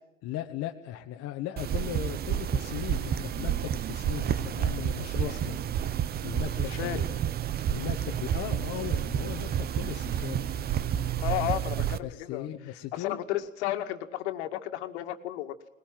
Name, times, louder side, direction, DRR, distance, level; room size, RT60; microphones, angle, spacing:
voice 1, 0.2-5.6 6.2-7.0 7.7-10.5 12.0-13.2, left 12 dB, 35° left, 3 dB, 1.4 m, -37 dB
sound 1, 1.6-12.0, right 9 dB, 25° right, 0.9 m, -30 dB
voice 2, 6.6-7.0 9.8-9.9 11.2-12.5 12.9-15.6, left 14 dB, 55° left, 7 dB, 2.2 m, -33 dB
21.0 x 20.5 x 7.6 m, 0.84 s
hypercardioid pair, 95°, 40 cm